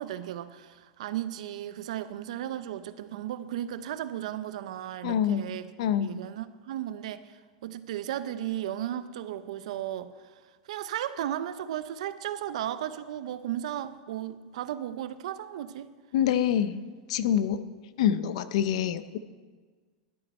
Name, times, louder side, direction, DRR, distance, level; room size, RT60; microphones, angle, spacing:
voice 1, 0.0-5.7 6.0-10.1 10.7-15.9, right 11 dB, 75° right, 13 dB, 0.6 m, -35 dB
voice 2, 5.0-5.4 5.8-6.1 16.1-16.8 17.1-17.6 18.0-19.2, left 9 dB, 70° left, 13 dB, 0.6 m, -25 dB
11.5 x 10.5 x 4.3 m, 1.5 s
supercardioid pair, 150°, 4 cm